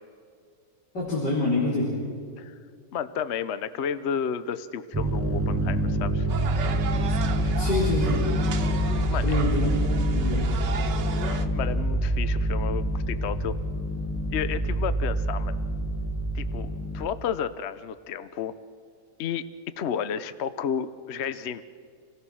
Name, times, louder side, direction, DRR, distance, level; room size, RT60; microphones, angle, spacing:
voice 1, 0.9-1.9 7.6-8.2 9.2-9.7 9.9-10.5, left 2 dB, 75° left, -5 dB, 4.4 m, -26 dB
voice 2, 2.9-6.3 9.1-9.4 11.3-13.6 14.3-15.6 16.3-18.6 19.2-19.5 19.8-21.6, left 8 dB, 55° left, 13 dB, 0.8 m, -32 dB
sound 1, 4.9-17.1, right 1 dB, 10° right, 0.7 m, -26 dB
sound 2, 6.3-11.5, right 6 dB, 85° right, 1.8 m, -35 dB
27.5 x 17.5 x 6.3 m, 2.2 s
omnidirectional pair, 1.8 m